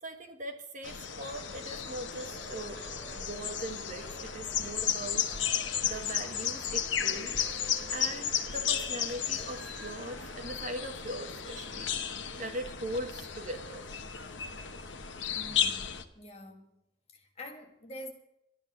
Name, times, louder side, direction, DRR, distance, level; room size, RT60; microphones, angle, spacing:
voice 1, 0.0-2.8 3.1-5.3 5.8-11.9 12.4-13.9, right 1 dB, 40° right, 1.4 m, -40 dB
sound 1, 0.8-16.0, left 8 dB, 70° left, 1.1 m, -34 dB
Cheering, 1.1-14.9, right 2 dB, 75° right, 6.3 m, -51 dB
voice 2, 15.3-16.8 17.1-18.1, left 1 dB, 30° left, 1.9 m, -46 dB
12.5 x 10.5 x 7.3 m
head